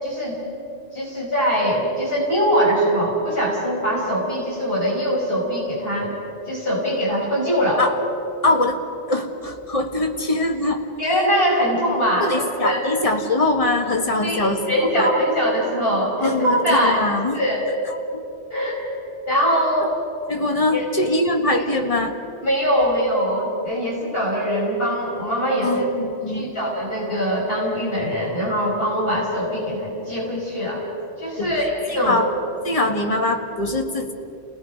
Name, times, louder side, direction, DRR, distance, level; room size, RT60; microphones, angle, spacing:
voice 1, 0.0-0.4 0.9-6.1 6.5-7.8 11.0-12.8 14.2-17.0 17.3-17.7 18.5-18.8 19.3-19.9 20.7-20.8 21.5-21.7 22.4-25.8 26.3-30.8 31.2-32.3, equal, 55° left, -4 dB, 5.5 m, -22 dB
voice 2, 8.4-8.8 9.1-10.8 12.2-15.1 16.2-17.4 18.1-18.2 20.3-22.1 25.6-26.5 31.4-31.5 31.9-32.3 32.6-34.1, left 2 dB, 30° left, 3 dB, 1.7 m, -22 dB
30.0 x 18.5 x 5.3 m, 2.8 s
omnidirectional pair, 1.2 m